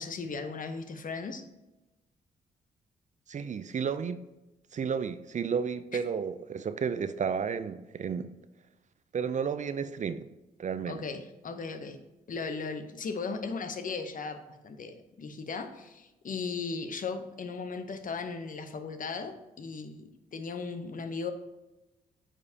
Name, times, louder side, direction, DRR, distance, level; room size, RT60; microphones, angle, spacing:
voice 1, 0.0-1.4 10.9-12.0 12.3-21.3, left 4 dB, 50° left, 8 dB, 0.9 m, -37 dB
voice 2, 3.3-4.2 4.7-8.3 9.1-10.3 10.6-11.0, right 6 dB, 45° right, 12 dB, 0.5 m, -32 dB
8.7 x 4.9 x 2.8 m, 1.0 s
hypercardioid pair, 45°, 18 cm